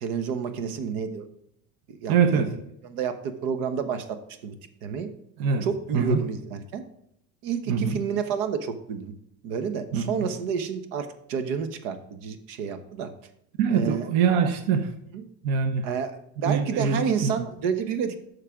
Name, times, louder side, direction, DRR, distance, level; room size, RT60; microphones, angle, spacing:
voice 1, 0.0-1.3 1.9-2.1 2.8-4.2 4.4-4.5 4.8-5.1 5.6-6.8 7.4-9.1 9.4-13.1 13.7-14.1 15.1-15.2 15.8-18.3, right 7 dB, 75° right, 9 dB, 1.3 m, -30 dB
voice 2, 2.1-2.5 5.4-5.7 5.9-6.2 7.7-8.0 9.9-10.0 13.6-14.9 15.4-15.9 16.4-17.3, right 6 dB, 55° right, 7 dB, 1.1 m, -23 dB
12.0 x 6.6 x 3.8 m, 0.74 s
cardioid pair, 165°, 41 cm